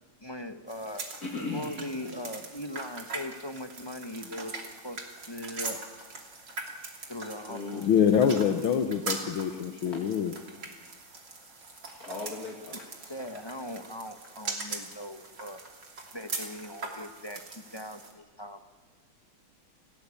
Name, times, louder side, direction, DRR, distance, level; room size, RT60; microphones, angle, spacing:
voice 1, 0.2-1.1 1.5-5.0 5.3-5.8 7.1-7.9 13.1-15.6 16.1-18.7, left 1 dB, 15° left, 8 dB, 0.9 m, -40 dB
sound 1, 0.7-18.1, right 3 dB, 55° right, 3.5 m, -41 dB
voice 2, 1.2-1.8 6.9-7.0 7.5-7.9 9.9-10.0 11.9-13.1, left 3 dB, 45° left, 1 dB, 2.8 m, -38 dB
voice 3, 7.8-10.4, left 8 dB, 80° left, 8 dB, 1.9 m, -25 dB
29.0 x 17.0 x 8.5 m, 1.4 s
omnidirectional pair, 2.2 m